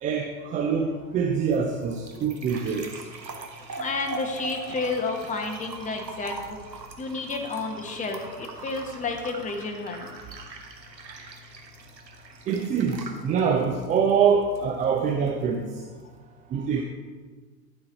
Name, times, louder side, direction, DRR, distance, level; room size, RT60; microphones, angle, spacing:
voice 1, 0.0-2.9 12.5-15.7 16.5-16.8, right 6 dB, 15° right, 3 dB, 0.4 m, -24 dB
sound 1, 1.2-16.2, right 3 dB, 90° right, 1.2 m, -42 dB
voice 2, 3.8-6.6 7.0-10.1, left 3 dB, 15° left, 2 dB, 1.2 m, -31 dB
12.0 x 6.3 x 4.0 m, 1.4 s
figure-of-eight pair, 85°, 50 cm